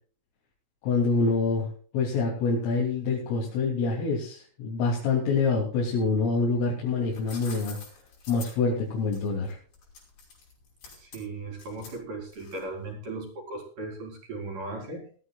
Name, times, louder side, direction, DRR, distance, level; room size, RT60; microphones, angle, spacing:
voice 1, 0.8-7.8 8.3-9.6, left 4 dB, 85° left, -4 dB, 5.8 m, -26 dB
sound 1, 6.9-12.8, left 4 dB, 55° left, 7.3 m, -47 dB
voice 2, 11.0-15.1, right 2 dB, 45° right, 1 dB, 5.3 m, -37 dB
20.5 x 14.0 x 2.4 m, 0.43 s
omnidirectional pair, 5.7 m